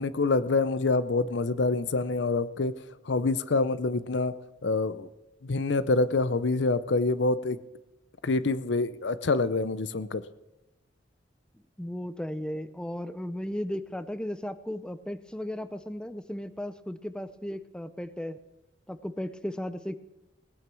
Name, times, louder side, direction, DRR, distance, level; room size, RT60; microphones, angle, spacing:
voice 1, 0.0-2.7 3.1-4.3 4.6-5.1 5.4-7.6 8.2-10.2, left 3 dB, 70° left, 15 dB, 0.6 m, -26 dB
voice 2, 11.8-18.4 18.9-20.0, left 1 dB, 5° left, 12 dB, 0.5 m, -35 dB
18.0 x 9.3 x 6.2 m, 0.97 s
head